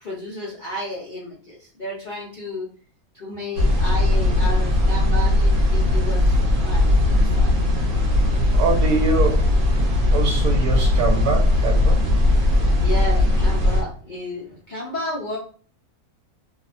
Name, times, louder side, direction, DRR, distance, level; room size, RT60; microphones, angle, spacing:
voice 1, 0.0-2.7 3.1-6.4 6.6-7.5 12.8-15.4, left 1 dB, 55° left, -5 dB, 0.5 m, -32 dB
sound 1, 3.6-13.8, left 1 dB, 65° right, 1.0 m, -18 dB
voice 2, 8.5-9.5 10.1-12.0, right 4 dB, 90° right, 2 dB, 1.2 m, -24 dB
2.8 x 2.1 x 2.4 m, 0.41 s
omnidirectional pair, 1.6 m